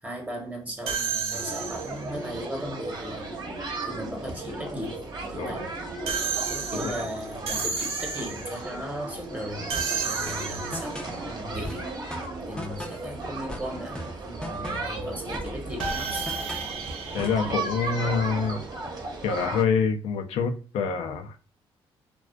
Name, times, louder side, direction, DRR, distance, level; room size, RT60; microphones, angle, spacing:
voice 1, 0.0-3.3 3.8-5.0 5.3-5.7 6.1-11.9 12.5-16.3, equal, 15° right, 1.0 m, -37 dB
sound 1, 0.9-2.1 6.1-8.6 9.7-11.0 15.8-18.3, right 5 dB, 75° right, 0.6 m, -32 dB
sound 2, 1.3-19.6, right 3 dB, 40° right, 0.9 m, -35 dB
voice 2, 5.4-5.7 6.8-6.9 17.1-18.6 19.2-21.4, left 5 dB, 80° left, 0.5 m, -26 dB
sound 3, 10.3-11.2 11.6-13.1 13.5-15.0 15.3-16.8 17.2-17.5, left 1 dB, 10° left, 0.5 m, -38 dB
2.3 x 2.3 x 2.2 m
cardioid pair, 90°, 10 cm